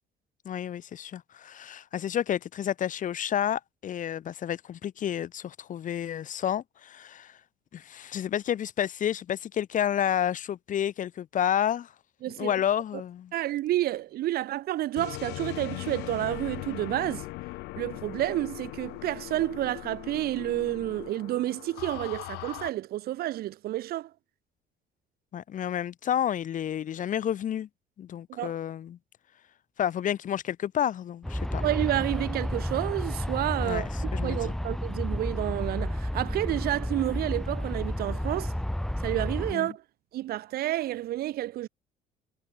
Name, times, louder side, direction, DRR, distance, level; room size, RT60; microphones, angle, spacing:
voice 1, 0.4-7.4 7.7-11.9 12.4-13.3 25.3-27.7 28.0-29.0 29.8-31.6 33.6-33.8 34.1-34.5 39.5-39.7, left 10 dB, 50° left, 1.4 m, -30 dB
voice 2, 12.2-12.5 13.3-17.3 17.8-24.1 28.3-28.5 31.6-33.9 34.2-38.5 39.0-39.8 40.1-41.7, right 14 dB, 65° right, 0.7 m, -30 dB
sound 1, 15.0-22.7, left 21 dB, 85° left, 0.5 m, -39 dB
Aircraft, 31.2-39.5, left 1 dB, 5° left, 0.9 m, -31 dB
cardioid pair, 110°, 17 cm